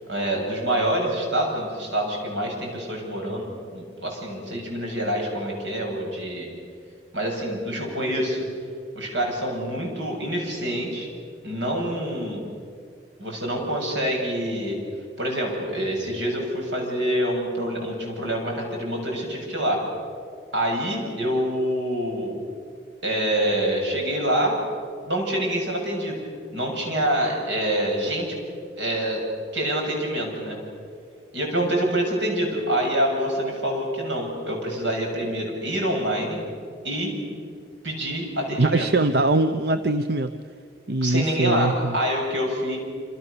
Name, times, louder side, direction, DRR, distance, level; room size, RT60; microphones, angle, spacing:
voice 1, 0.1-6.5 7.1-8.4 9.0-11.1 11.4-12.4 13.2-14.8 15.2-19.8 20.5-22.4 23.0-24.6 25.0-26.2 26.5-28.3 28.8-29.2 29.5-30.6 31.3-36.4 36.8-37.2 37.8-38.9 41.0-42.8, right 1 dB, 80° right, 0 dB, 7.4 m, -26 dB
voice 2, 38.6-40.3 40.9-42.0, right 2 dB, 55° right, 9 dB, 0.8 m, -22 dB
27.5 x 27.5 x 6.9 m, 2.2 s
head